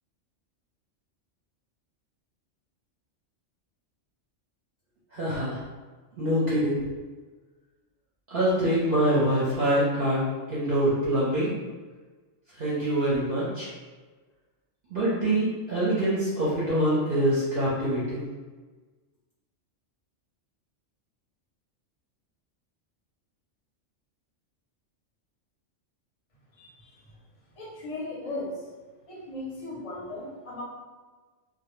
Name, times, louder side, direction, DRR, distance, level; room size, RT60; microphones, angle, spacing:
voice 1, 5.1-5.6 6.2-6.8 8.3-11.5 12.5-13.7 14.9-18.3, right 1 dB, 55° right, -9 dB, 0.7 m, -25 dB
voice 2, 26.5-27.2 27.5-28.7 29.1-30.6, left 2 dB, 40° left, -5 dB, 0.5 m, -37 dB
2.1 x 2.1 x 3.0 m, 1.3 s
omnidirectional pair, 1.3 m